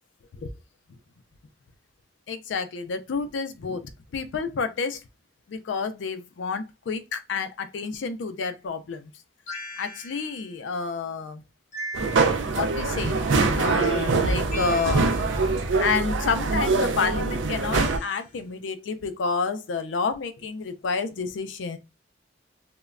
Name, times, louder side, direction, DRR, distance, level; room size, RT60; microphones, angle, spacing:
voice 1, 2.3-5.0 5.5-9.1 9.8-11.4 12.5-13.2 13.5-15.1 15.8-21.8, left 5 dB, 80° left, 0.4 m, -29 dB
sound 1, 9.5-10.4 11.7-12.7 14.5-15.4 17.7-18.3, equal, 40° left, 0.9 m, -38 dB
sound 2, 11.9-18.0, right 3 dB, 85° right, 0.4 m, -24 dB
3.0 x 2.1 x 2.4 m
head